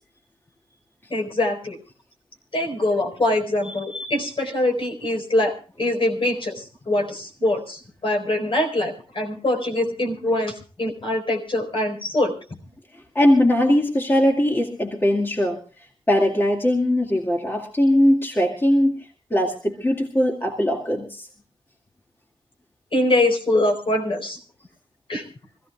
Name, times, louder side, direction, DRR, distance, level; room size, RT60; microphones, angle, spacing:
voice 1, 1.1-1.8 2.5-12.3 22.9-24.4 25.1-25.2, left 1 dB, 50° left, 3 dB, 4.2 m, -23 dB
voice 2, 13.2-15.6 16.1-21.3, left 1 dB, 20° left, 1 dB, 2.1 m, -20 dB
25.5 x 15.5 x 2.3 m, 0.37 s
wide cardioid pair, 80°, 11 cm